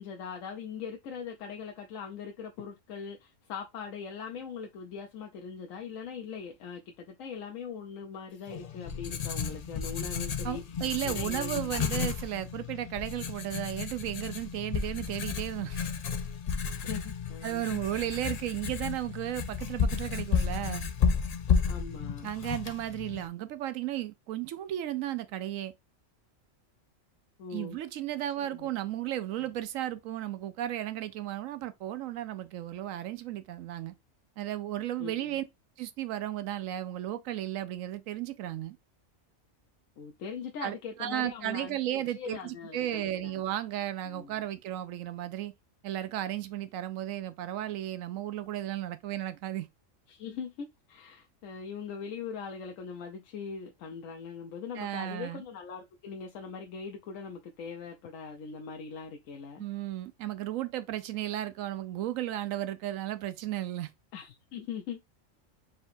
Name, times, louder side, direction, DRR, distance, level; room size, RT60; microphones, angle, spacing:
voice 1, 0.0-11.6 11.9-12.1 16.7-17.8 21.7-22.3 27.4-27.8 28.4-28.7 29.4-29.5 35.0-35.4 40.0-43.3 44.1-44.5 50.1-59.7 64.1-65.0, left 6 dB, 85° left, 1.1 m, -41 dB
Writing, 8.5-23.3, left 6 dB, 65° left, 0.4 m, -32 dB
voice 2, 10.4-15.9 17.4-20.9 22.2-25.7 27.5-33.9 34.4-35.4 35.8-38.8 40.6-45.5 45.8-49.7 54.8-55.4 59.6-63.9, right 13 dB, 85° right, 1.0 m, -34 dB
4.3 x 3.9 x 2.6 m
omnidirectional pair, 1.3 m